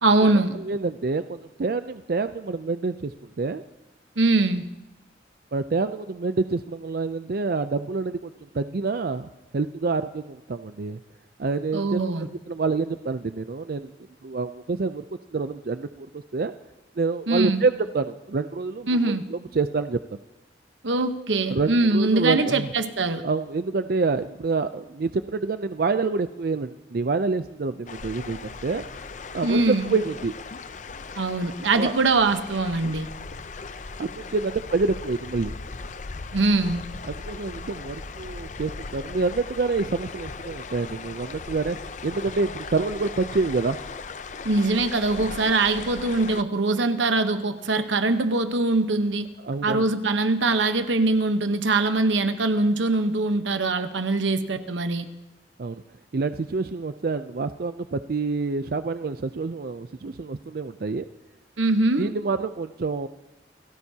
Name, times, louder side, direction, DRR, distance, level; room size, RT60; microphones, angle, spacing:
voice 1, 0.0-0.6 4.2-4.7 11.7-12.3 17.3-17.6 18.9-19.3 20.8-23.2 29.4-29.9 31.2-33.1 36.3-36.8 44.4-49.3 49.6-55.1 61.6-62.1, right 2 dB, 85° right, 9 dB, 1.0 m, -22 dB
voice 2, 0.6-3.6 5.5-9.3 9.5-11.0 11.4-12.0 12.5-13.9 14.2-15.0 15.3-16.5 17.0-20.0 21.5-22.7 23.2-28.8 29.3-30.3 31.7-31.9 34.0-35.5 37.1-41.8 42.0-43.8 49.4-49.8 55.6-55.8 56.1-61.1 62.0-63.1, right 4 dB, 55° right, 10 dB, 0.4 m, -27 dB
sound 1, 27.9-46.4, left 4 dB, 40° left, 0.6 m, -38 dB
28.5 x 17.5 x 2.8 m, 1.1 s
head